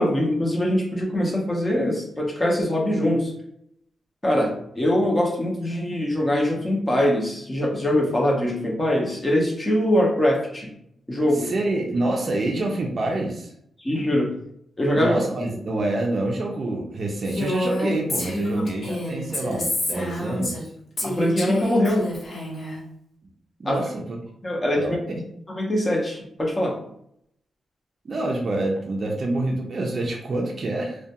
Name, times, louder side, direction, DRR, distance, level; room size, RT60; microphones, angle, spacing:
voice 1, 0.0-3.3 4.2-10.7 11.1-11.5 13.8-14.3 14.8-15.1 21.0-22.1 23.7-23.8 24.4-24.8 25.5-26.8, left 1 dB, 20° left, -1 dB, 0.6 m, -22 dB
voice 2, 11.4-13.5 14.9-20.7 23.6-24.2 24.8-25.2 28.0-31.0, right 2 dB, 45° right, 0 dB, 0.4 m, -27 dB
Female speech woman speaking, 17.2-20.7 21.0-22.8, left 1 dB, 55° left, 0.9 m, -28 dB
2.3 x 2.2 x 2.7 m, 0.72 s
cardioid pair, 105°, 0 cm